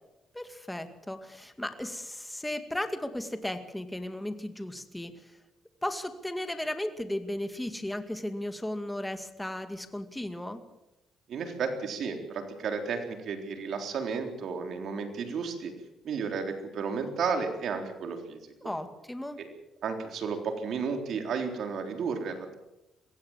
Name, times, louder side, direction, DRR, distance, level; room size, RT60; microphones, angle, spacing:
voice 1, 0.3-5.3 5.8-10.6 18.6-19.4, left 1 dB, 5° left, 8 dB, 2.2 m, -35 dB
voice 2, 11.3-15.7 16.0-18.7 19.4-19.5 19.8-22.5, right 5 dB, 65° right, 5 dB, 3.8 m, -33 dB
23.0 x 16.5 x 7.4 m, 0.94 s
cardioid pair, 90°, 0 cm